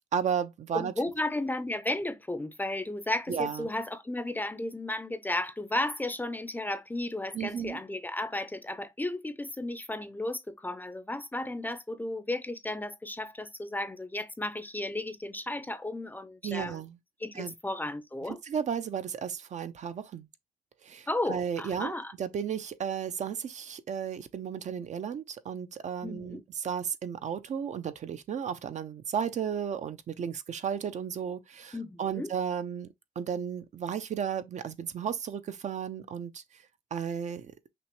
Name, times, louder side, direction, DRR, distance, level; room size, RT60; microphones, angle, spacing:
voice 1, 0.1-0.9 3.3-3.7 7.3-7.8 16.4-17.0 17.3-17.5 18.4-20.3 20.8-32.9 33.2-36.4 36.9-37.5, right 8 dB, 50° right, 0.5 m, -34 dB
voice 2, 0.7-16.8 17.2-18.4 21.1-22.1 26.0-26.4 31.7-32.3, left 2 dB, 10° left, 0.5 m, -34 dB
5.9 x 2.1 x 3.0 m
cardioid pair, 105°, 15 cm